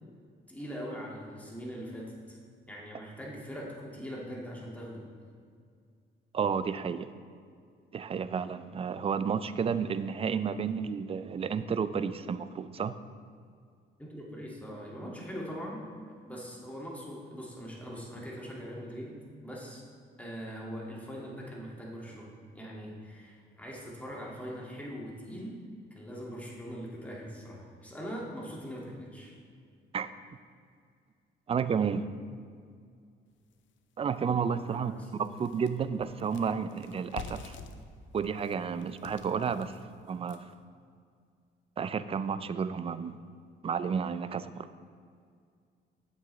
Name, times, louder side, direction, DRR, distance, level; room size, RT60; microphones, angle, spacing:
voice 1, 0.5-2.4 2.7-5.1 14.0-15.8 16.1-19.8 20.2-25.6 25.9-29.3 34.7-35.3, equal, 5° left, -4 dB, 1.9 m, -42 dB
voice 2, 6.3-7.1 7.9-13.0 29.9-30.1 31.5-32.0 34.0-37.6 38.1-39.8 40.1-40.5 41.8-43.2 43.6-44.7, right 6 dB, 30° right, 13 dB, 0.3 m, -31 dB
sound 1, 33.5-33.6 34.1-34.2 34.6-40.6, left 5 dB, 70° left, 0.6 m, -48 dB
8.7 x 7.1 x 3.1 m, 2.2 s
cardioid pair, 90°, 20 cm